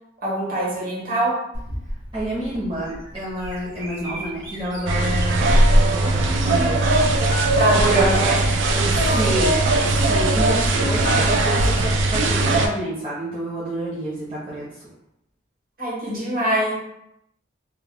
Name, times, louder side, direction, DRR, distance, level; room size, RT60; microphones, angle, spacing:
voice 1, 0.2-1.4 7.6-8.3 8.6-9.4 10.0-10.1 15.8-16.8, right 2 dB, 50° right, -7 dB, 1.2 m, -23 dB
Bird vocalization bird call bird song, 1.5-10.0, equal, 70° right, 1.0 m, -36 dB
voice 2, 2.1-6.9 7.8-8.2 8.8-9.5 9.8-14.8, right 1 dB, 30° right, -10 dB, 0.7 m, -29 dB
sound 1, 4.9-12.7, right 2 dB, 90° right, 0.4 m, -19 dB
Telephone, 6.1-11.5, right 1 dB, 40° left, 0.4 m, -34 dB
2.3 x 2.2 x 3.3 m, 0.81 s
head